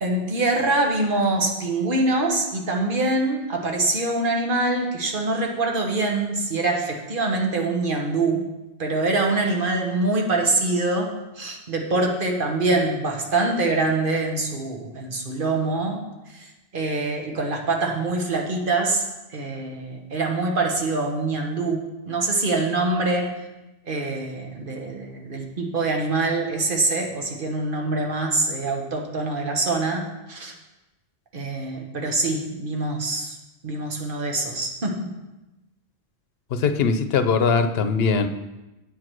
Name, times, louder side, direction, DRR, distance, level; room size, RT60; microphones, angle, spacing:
voice 1, 0.0-8.4 8.8-16.0 16.3-16.4 16.7-19.1 19.3-23.3 23.9-30.5 31.3-33.3 33.6-35.1, right 2 dB, 55° right, 1 dB, 1.3 m, -24 dB
voice 2, 36.5-38.3, left 5 dB, 75° left, 9 dB, 0.9 m, -21 dB
8.7 x 4.8 x 6.0 m, 1.0 s
omnidirectional pair, 1.0 m